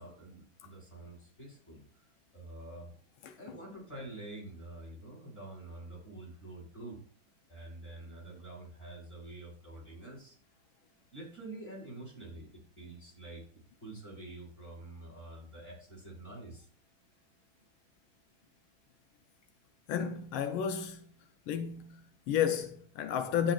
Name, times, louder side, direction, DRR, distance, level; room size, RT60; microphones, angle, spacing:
voice 1, 0.0-2.9 3.4-7.0 7.5-10.4 11.1-12.5 12.8-13.4 13.8-16.7, right 2 dB, 35° left, 5.2 m, -47 dB
voice 2, 3.2-3.6 19.9-21.1 21.5-23.5, left 8 dB, 90° left, 1.5 m, -32 dB
11.5 x 8.1 x 2.5 m
omnidirectional pair, 2.2 m